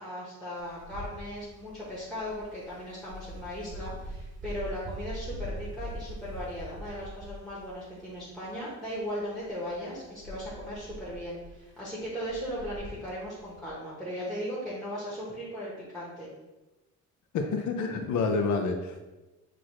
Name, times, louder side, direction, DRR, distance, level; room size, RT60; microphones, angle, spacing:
voice 1, 0.0-16.3, equal, 5° left, -8 dB, 1.0 m, -37 dB
Wind, 0.6-13.7, equal, 40° right, 0.6 m, -43 dB
voice 2, 17.3-19.1, left 4 dB, 85° left, 5 dB, 0.6 m, -28 dB
6.1 x 2.5 x 3.0 m, 1.1 s
cardioid pair, 135°, 29 cm